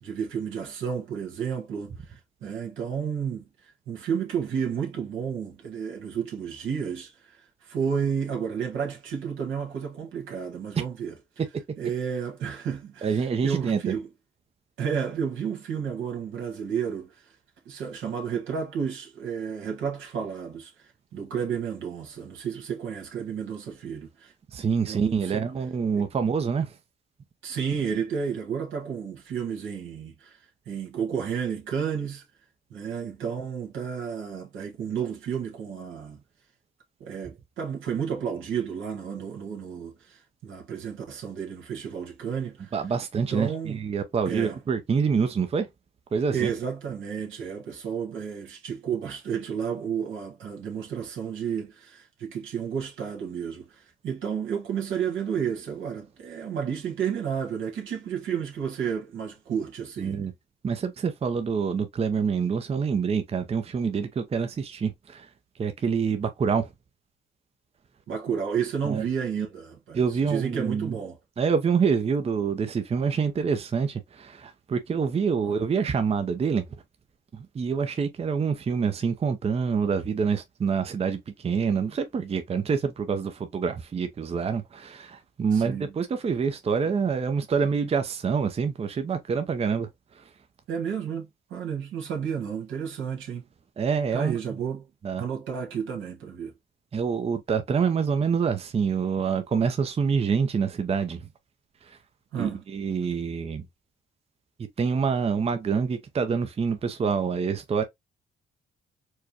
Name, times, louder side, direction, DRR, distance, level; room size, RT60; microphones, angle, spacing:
voice 1, 0.0-3.4 3.9-7.4 7.6-11.1 11.8-14.1 14.8-17.2 17.6-20.7 21.1-24.3 24.8-25.5 27.4-30.4 30.6-32.2 32.7-36.2 37.0-42.7 43.3-43.8 44.3-44.6 46.3-60.2 68.1-70.0 70.3-71.2 75.4-75.6 85.5-85.9 90.7-93.4 94.1-94.9 95.2-96.5 102.3-102.6, right 7 dB, 80° right, 1.5 m, -31 dB
voice 2, 13.0-13.8 24.5-26.8 42.7-45.7 46.1-46.5 60.0-60.3 60.6-65.3 65.6-66.7 68.9-69.0 69.9-71.0 71.4-76.7 77.3-89.9 90.1-90.3 93.8-94.6 95.0-95.2 96.9-101.3 101.8-102.0 102.4-103.7 104.8-107.8, right 6 dB, 30° right, 0.5 m, -26 dB
4.6 x 2.2 x 2.8 m
cardioid pair, 90°, 20 cm